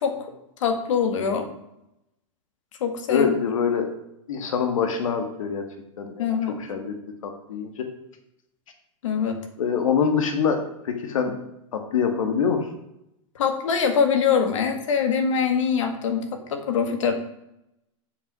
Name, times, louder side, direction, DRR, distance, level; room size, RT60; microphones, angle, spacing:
voice 1, 0.6-1.5 2.8-3.3 6.2-6.6 9.0-9.4 13.4-17.1, left 6 dB, 70° left, 6 dB, 2.0 m, -23 dB
voice 2, 3.1-3.9 4.3-5.6 6.0-6.3 6.6-6.9 7.2-7.9 9.6-11.3 11.7-12.7, left 6 dB, 90° left, 5 dB, 1.7 m, -24 dB
8.0 x 7.2 x 6.2 m, 0.84 s
supercardioid pair, 175°, 17 cm